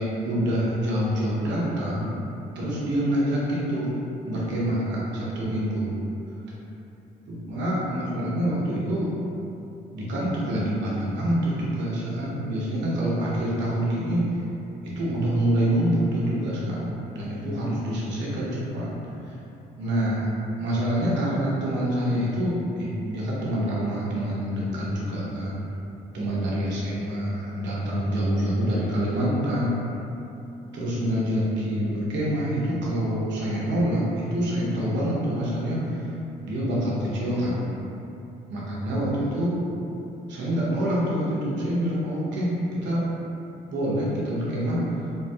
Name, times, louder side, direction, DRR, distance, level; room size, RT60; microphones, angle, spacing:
voice 1, 0.0-2.2 2.5-3.9 4.2-5.9 7.3-9.1 9.9-14.2 15.0-18.9 19.3-19.4 19.8-25.6 26.1-29.8 30.7-36.1 36.4-37.7 38.5-39.5 40.3-42.5 42.8-43.0 43.7-44.8, equal, 70° right, -6 dB, 0.9 m, -26 dB
3.7 x 2.2 x 2.7 m, 2.8 s
supercardioid pair, 65°, 19 cm